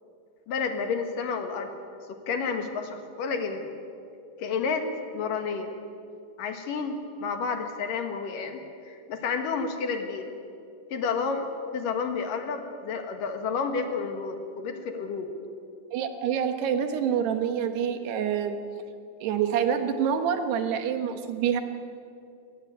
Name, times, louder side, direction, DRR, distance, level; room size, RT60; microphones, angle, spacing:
voice 1, 0.5-1.7 2.1-3.7 4.4-4.9 5.1-5.7 6.4-10.2 10.9-15.3, left 5 dB, 60° left, 6 dB, 3.1 m, -30 dB
voice 2, 15.9-18.6 19.2-21.6, right 8 dB, 90° right, 7 dB, 3.6 m, -27 dB
22.0 x 19.0 x 9.6 m, 2.5 s
omnidirectional pair, 4.6 m